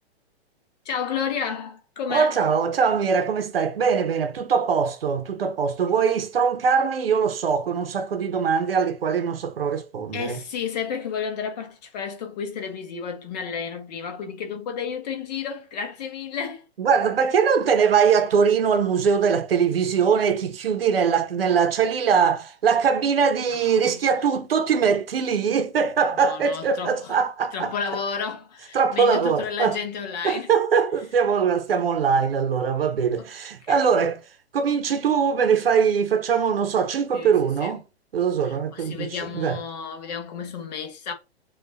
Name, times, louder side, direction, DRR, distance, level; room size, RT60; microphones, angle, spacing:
voice 1, 0.8-2.4 10.1-16.6 23.5-24.0 26.2-27.2 27.5-30.5 33.2-33.3 33.6-33.9 37.1-37.7 38.4-41.1, left 6 dB, 40° left, 1.0 m, -32 dB
voice 2, 2.1-10.4 16.8-27.7 28.7-29.8 30.2-34.2 34.5-37.8 38.1-39.6, right 6 dB, 60° right, 0.9 m, -22 dB
6.2 x 2.5 x 2.7 m
figure-of-eight pair, 110°, 33 cm